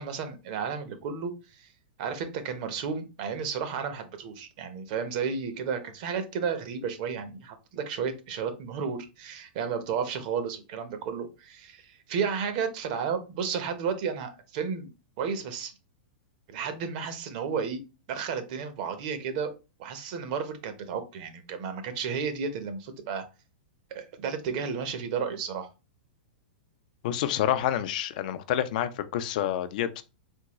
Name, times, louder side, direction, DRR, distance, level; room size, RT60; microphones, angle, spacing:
voice 1, 0.0-1.7 2.0-14.9 15.2-15.7 16.5-17.8 18.1-19.5 19.8-23.3 23.9-25.7, right 6 dB, 50° right, 0.7 m, -32 dB
voice 2, 27.0-30.0, left 11 dB, 55° left, 0.4 m, -28 dB
3.5 x 2.3 x 2.9 m
hypercardioid pair, 135°, 5 cm